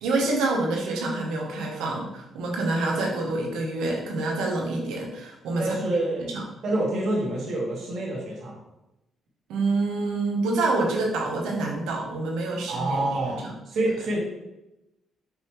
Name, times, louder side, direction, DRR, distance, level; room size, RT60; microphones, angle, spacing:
voice 1, 0.0-5.7 6.3-6.4 9.5-13.3, right 2 dB, 90° right, 0 dB, 0.9 m, -27 dB
voice 2, 5.6-6.3 6.6-8.6 12.7-14.2, right 1 dB, 65° right, -5 dB, 1.5 m, -27 dB
5.3 x 2.9 x 3.1 m, 0.92 s
cardioid pair, 90°, 0 cm